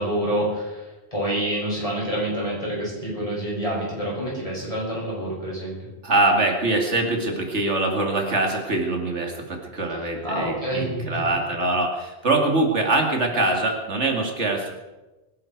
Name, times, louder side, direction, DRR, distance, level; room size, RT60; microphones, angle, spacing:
voice 1, 0.0-5.9 9.9-11.2, right 1 dB, 30° left, -5 dB, 7.5 m, -27 dB
voice 2, 6.0-14.7, right 2 dB, 75° right, 2 dB, 2.6 m, -23 dB
24.0 x 11.5 x 4.7 m, 1.1 s
omnidirectional pair, 1.2 m